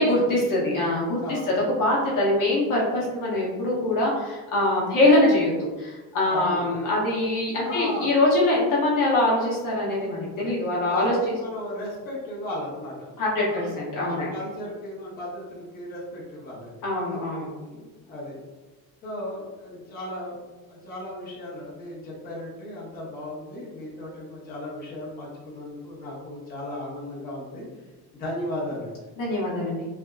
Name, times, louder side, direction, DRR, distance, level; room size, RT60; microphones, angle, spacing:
voice 1, 0.0-11.3 13.2-14.3 16.8-17.4 29.2-29.8, left 1 dB, 50° left, -4 dB, 0.9 m, -23 dB
voice 2, 1.2-1.5 6.3-6.7 7.6-8.1 10.9-13.2 13.5-16.8 17.6-18.4 19.0-20.4 20.7-27.7 28.1-29.0, left 1 dB, 20° left, -7 dB, 0.8 m, -36 dB
3.4 x 2.5 x 2.3 m, 1.2 s
cardioid pair, 150°, 42 cm